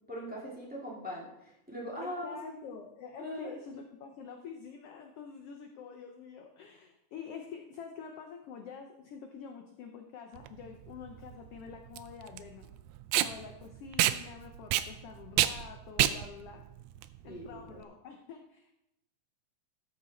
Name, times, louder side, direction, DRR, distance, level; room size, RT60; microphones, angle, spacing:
voice 1, 0.1-2.7 3.2-3.5 17.3-17.8, equal, 5° right, -5 dB, 2.0 m, -41 dB
voice 2, 2.0-12.7 13.1-16.6 17.2-18.7, left 6 dB, 70° left, 4 dB, 1.5 m, -47 dB
Packing tape duct tape, 10.4-17.8, right 13 dB, 80° right, 1.7 m, -30 dB
13.0 x 6.3 x 4.2 m, 0.86 s
omnidirectional pair, 3.3 m